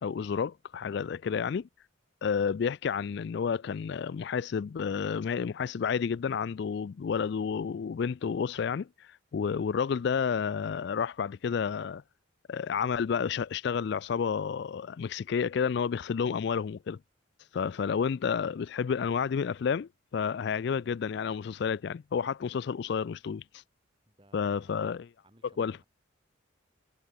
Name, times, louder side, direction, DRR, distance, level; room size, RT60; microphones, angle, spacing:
voice 1, 0.0-1.7 2.2-12.0 12.5-17.0 17.5-23.6 24.3-25.1 25.6-25.8, left 6 dB, 55° left, 0.3 m, -30 dB
voice 2, 24.1-24.7 25.2-25.9, right 1 dB, 25° right, 7.4 m, -61 dB
head